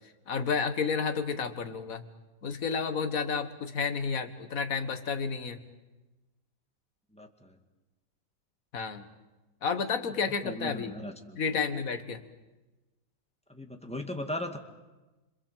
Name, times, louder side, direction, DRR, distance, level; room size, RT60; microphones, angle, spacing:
voice 1, 0.3-2.0 2.4-5.6 8.7-9.0 9.6-10.9 11.4-12.2, left 5 dB, 45° left, 8 dB, 1.9 m, -31 dB
voice 2, 7.1-7.6 10.4-11.4 13.5-14.6, left 1 dB, 5° left, 4 dB, 1.9 m, -37 dB
27.5 x 26.0 x 7.6 m, 1.1 s
omnidirectional pair, 2.2 m